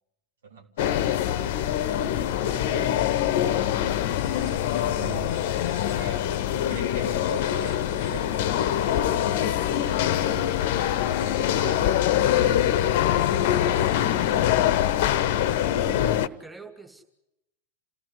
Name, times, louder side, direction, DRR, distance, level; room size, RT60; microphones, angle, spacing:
voice 1, 0.4-3.8 4.1-5.3 5.8-6.4 6.7-14.4, right 5 dB, 65° right, 4 dB, 3.4 m, -42 dB
sound 1, 0.8-16.3, left 11 dB, 50° left, 0.9 m, -24 dB
sound 2, 4.1-12.0, right 4 dB, 45° right, 7.1 m, -55 dB
voice 2, 15.7-17.0, right 3 dB, 5° right, 4 dB, 2.4 m, -44 dB
29.0 x 16.5 x 8.1 m, 0.86 s
figure-of-eight pair, 90°, 0 cm